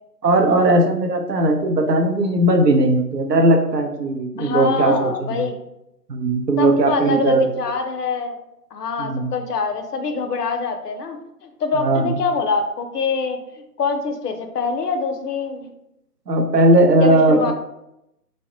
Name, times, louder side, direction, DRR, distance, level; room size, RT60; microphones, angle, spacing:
voice 1, 0.2-5.5 6.1-7.5 9.0-9.3 11.7-12.2 16.3-17.5, right 2 dB, 80° right, 3 dB, 0.6 m, -18 dB
voice 2, 4.4-5.5 6.6-8.4 8.7-13.4 13.8-15.7 17.0-17.5, left 4 dB, 70° left, 6 dB, 0.5 m, -24 dB
2.1 x 2.0 x 3.6 m, 0.86 s
figure-of-eight pair, 150°, 49 cm